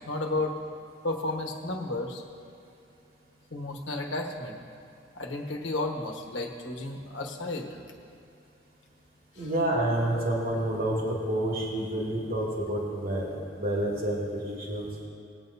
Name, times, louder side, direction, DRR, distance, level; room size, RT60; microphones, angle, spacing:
voice 1, 0.1-0.5 1.0-2.2 3.5-4.6 5.1-7.7 9.4-9.5, left 2 dB, 80° left, 1 dB, 1.3 m, -32 dB
voice 2, 9.4-14.9, right 1 dB, 55° right, -3 dB, 2.0 m, -29 dB
19.0 x 8.9 x 2.7 m, 2.6 s
head